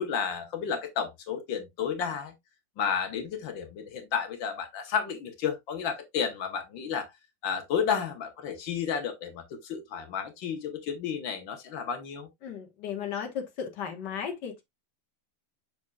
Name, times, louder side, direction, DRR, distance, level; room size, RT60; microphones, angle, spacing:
voice 1, 0.0-2.3 2.8-7.1 7.4-12.3, left 7 dB, 90° left, 1.9 m, -32 dB
voice 2, 12.4-14.6, left 7 dB, 65° left, 1.9 m, -35 dB
7.0 x 6.2 x 2.3 m
omnidirectional pair, 2.0 m